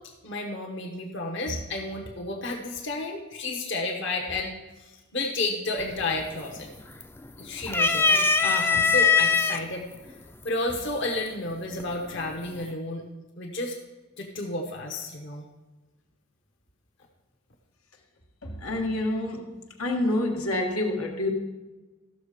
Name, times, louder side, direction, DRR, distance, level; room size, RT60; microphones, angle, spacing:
voice 1, 0.2-4.5 4.8-6.7 7.4-9.9 10.4-13.0 13.4-13.8 14.2-15.5, left 2 dB, 55° left, 1.0 m, -31 dB
sound 1, 5.8-6.2 6.6-7.3 7.7-9.6 10.5-10.6 11.8-12.3, left 5 dB, 10° left, 0.3 m, -21 dB
voice 2, 18.4-21.3, left 1 dB, 85° left, 1.6 m, -28 dB
14.0 x 6.4 x 5.0 m
head